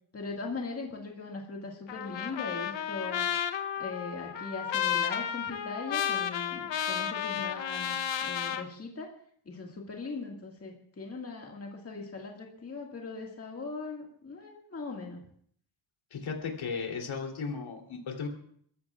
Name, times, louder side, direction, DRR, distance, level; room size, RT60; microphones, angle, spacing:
voice 1, 0.1-3.2 3.8-7.9 8.2-9.1 9.5-15.2, left 4 dB, 30° left, 0 dB, 1.9 m, -40 dB
Trumpet, 1.9-8.6, left 9 dB, 70° left, 1.0 m, -32 dB
voice 2, 16.1-18.3, left 5 dB, 90° left, 1 dB, 3.2 m, -35 dB
29.5 x 14.5 x 2.4 m, 0.63 s
wide cardioid pair, 175°, 47 cm